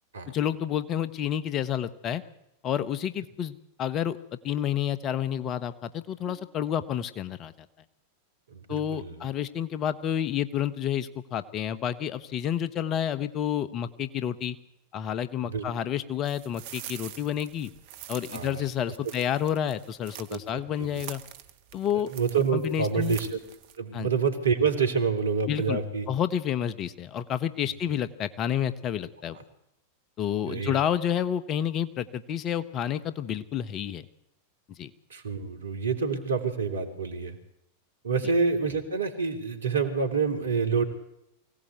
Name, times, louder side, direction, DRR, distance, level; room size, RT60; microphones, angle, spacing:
voice 1, 0.3-2.2 2.6-7.7 8.7-14.6 14.9-17.7 18.1-21.2 21.7-22.1 22.5-23.2 23.9-24.1 25.5-25.8 26.1-29.4 30.2-34.1 34.8-34.9, left 9 dB, 30° left, 14 dB, 1.2 m, -29 dB
voice 2, 8.5-9.2 15.4-15.6 18.3-18.6 20.3-21.1 22.1-23.4 23.8-26.1 30.5-30.8 35.1-37.4 38.0-40.8, right 5 dB, 70° right, 7 dB, 3.4 m, -27 dB
sound 1, 16.2-20.5 20.8-23.8, right 12 dB, 50° right, 1.5 m, -45 dB
24.0 x 17.5 x 8.2 m, 0.81 s
figure-of-eight pair, 90°, 0 cm